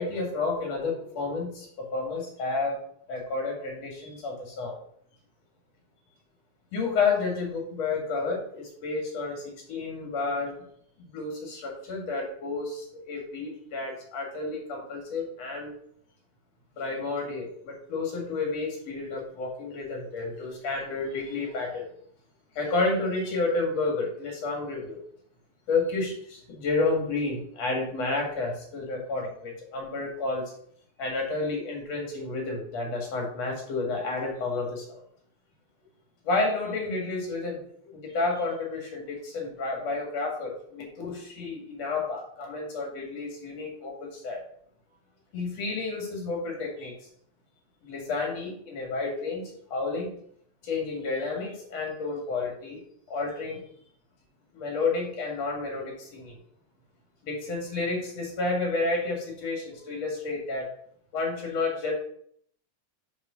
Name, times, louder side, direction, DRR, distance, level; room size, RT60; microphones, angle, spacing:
voice 1, 0.0-2.8 3.1-4.8 6.7-10.6 11.1-15.7 16.8-21.9 22.6-25.0 25.7-30.5 31.0-35.0 36.2-37.6 37.9-44.4 45.3-46.9 47.8-50.1 50.6-52.8 53.1-53.6 54.5-56.4 57.2-60.7 61.1-61.9, left 3 dB, 60° left, 0 dB, 3.1 m, -30 dB
7.3 x 3.8 x 6.3 m, 0.65 s
omnidirectional pair, 3.4 m